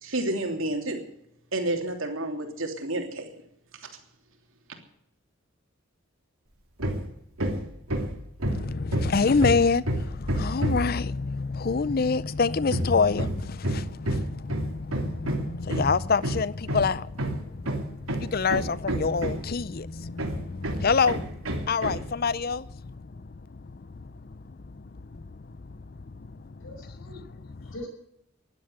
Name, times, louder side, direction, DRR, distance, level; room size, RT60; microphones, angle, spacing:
voice 1, 0.0-1.0 1.5-3.3 3.7-3.9, right 1 dB, 70° right, 3.1 m, -30 dB
Hammer, 6.8-7.1 7.4-11.0 12.7-19.6 20.2-22.1, right 1 dB, 85° right, 3.1 m, -29 dB
voice 2, 8.5-26.6 27.6-27.7, left 4 dB, 45° left, 0.5 m, -27 dB
voice 3, 26.6-27.9, left 1 dB, 70° left, 6.2 m, -43 dB
15.5 x 11.5 x 8.0 m
head